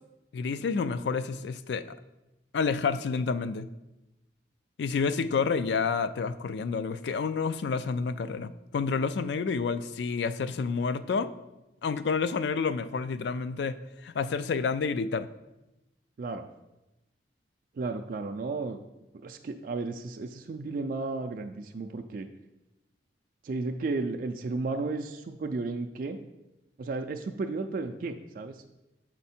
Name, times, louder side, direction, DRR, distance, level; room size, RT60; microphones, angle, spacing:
voice 1, 0.3-1.8 2.5-3.7 4.8-11.3 11.8-15.3, left 5 dB, 70° left, 13 dB, 0.3 m, -29 dB
voice 2, 17.7-18.8 19.2-22.3 23.4-26.2 26.8-28.6, right 3 dB, 50° right, 5 dB, 0.4 m, -33 dB
7.2 x 4.5 x 4.3 m, 0.96 s
head